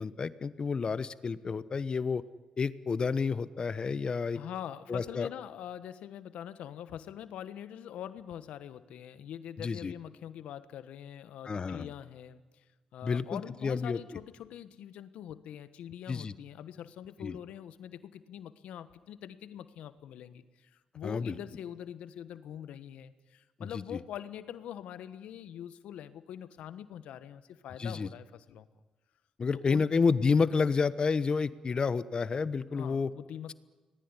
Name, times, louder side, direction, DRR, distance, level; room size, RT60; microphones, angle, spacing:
voice 1, 0.0-2.2 2.6-4.4 4.9-5.3 9.6-9.9 11.5-11.9 13.0-14.0 16.1-16.3 17.2-17.4 21.0-21.4 23.9-24.0 27.8-28.1 29.4-33.1, left 5 dB, 45° left, 15 dB, 1.1 m, -30 dB
voice 2, 4.3-12.6 12.9-28.7 29.5-29.9 32.7-33.5, left 10 dB, 85° left, 13 dB, 1.3 m, -44 dB
25.5 x 19.5 x 9.8 m, 1.2 s
cardioid pair, 70°, 2 cm